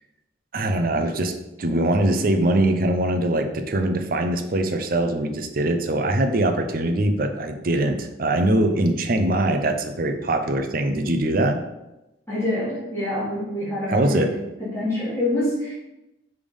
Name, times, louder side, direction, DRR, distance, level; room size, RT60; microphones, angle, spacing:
voice 1, 0.5-1.3 1.6-11.6 13.9-14.3, right 1 dB, 50° right, 6 dB, 0.6 m, -22 dB
voice 2, 12.3-14.3 14.6-15.7, left 1 dB, 15° left, -9 dB, 1.8 m, -26 dB
5.2 x 3.5 x 5.2 m, 0.96 s
head